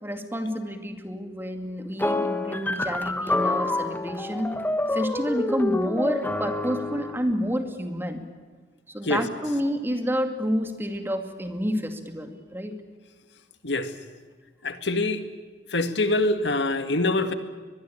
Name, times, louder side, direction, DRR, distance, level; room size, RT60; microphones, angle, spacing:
voice 1, 0.0-4.5 4.9-8.2 8.9-12.8, equal, 15° right, 6 dB, 2.4 m, -29 dB
sound 1, 2.0-7.2, left 2 dB, 10° left, 1.3 m, -27 dB
voice 2, 14.6-15.2 15.7-17.3, left 2 dB, 80° left, 8 dB, 2.0 m, -24 dB
23.5 x 22.0 x 8.9 m, 1.4 s
head